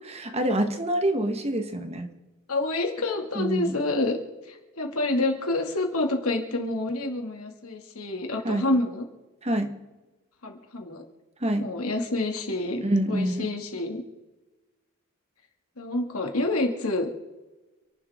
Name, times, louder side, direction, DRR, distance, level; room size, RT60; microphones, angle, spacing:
voice 1, 0.1-2.1 3.3-3.8 8.4-8.7 9.4-9.7 11.4-11.6 12.8-13.5, right 1 dB, 30° right, 6 dB, 1.4 m, -26 dB
voice 2, 2.5-4.2 4.5-9.0 10.4-11.0 11.6-12.8 13.1-14.0 15.8-17.1, left 2 dB, 80° left, 2 dB, 2.4 m, -28 dB
28.5 x 11.5 x 3.7 m, 1.1 s
head